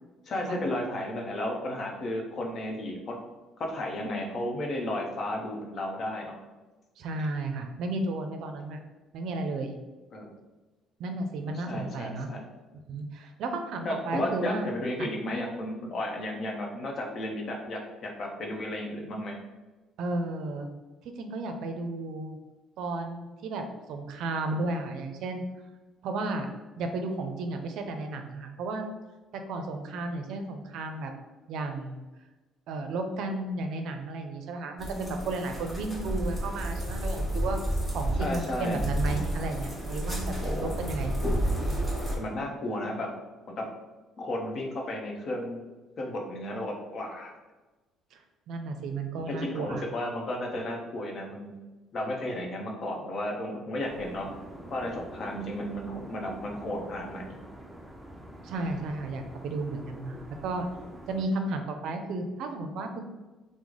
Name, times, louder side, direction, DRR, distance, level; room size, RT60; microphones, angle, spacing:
voice 1, 0.3-3.2 3.6-6.3 10.1-10.3 11.5-12.5 13.8-19.3 38.2-38.8 40.4-40.7 42.2-43.1 43.6-43.7 44.2-45.6 46.0-47.3 49.3-51.5 51.9-54.3 54.7-57.3, left 1 dB, 50° left, 1 dB, 0.7 m, -33 dB
voice 2, 7.0-8.8 9.1-9.8 11.0-12.3 12.9-14.7 15.0-15.1 20.0-20.7 21.0-22.4 22.8-25.4 26.0-26.5 26.8-28.8 29.3-31.1 31.5-32.1 32.7-37.6 37.9-41.2 41.6-41.9 48.1-48.2 48.5-49.8 58.4-60.7 61.1-63.0, right 2 dB, 70° right, 5 dB, 0.4 m, -33 dB
sound 1, 34.8-42.2, right 1 dB, 5° left, 1.2 m, -31 dB
sound 2, 53.8-61.3, right 1 dB, 10° right, 0.5 m, -45 dB
3.1 x 2.0 x 3.8 m, 1.2 s
supercardioid pair, 80°, 0 cm